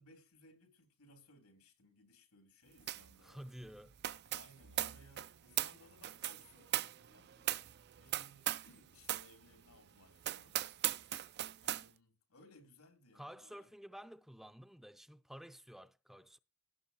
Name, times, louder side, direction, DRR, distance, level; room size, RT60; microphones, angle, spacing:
voice 1, 0.0-3.4 4.3-7.5 8.0-10.6 11.6-13.7, left 1 dB, 85° left, 3.7 m, -63 dB
sound 1, 2.9-3.2 3.4-8.8 9.0-9.3 9.7-9.8 10.2-11.9, right 13 dB, 50° right, 0.5 m, -39 dB
voice 2, 3.2-3.9 13.1-16.4, equal, ahead, 0.6 m, -52 dB
17.0 x 8.8 x 3.0 m
head